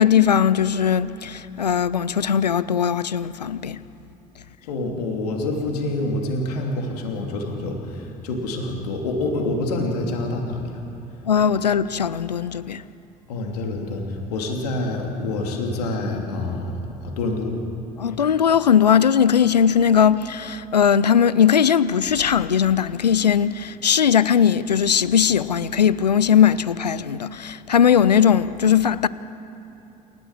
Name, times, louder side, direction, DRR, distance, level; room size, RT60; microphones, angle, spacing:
voice 1, 0.0-3.8 11.3-12.8 18.0-29.1, left 8 dB, 85° left, 0.5 m, -19 dB
voice 2, 4.6-10.8 13.3-17.6, left 2 dB, 70° left, 3.1 m, -27 dB
28.5 x 14.0 x 7.5 m
figure-of-eight pair, 60°, 21 cm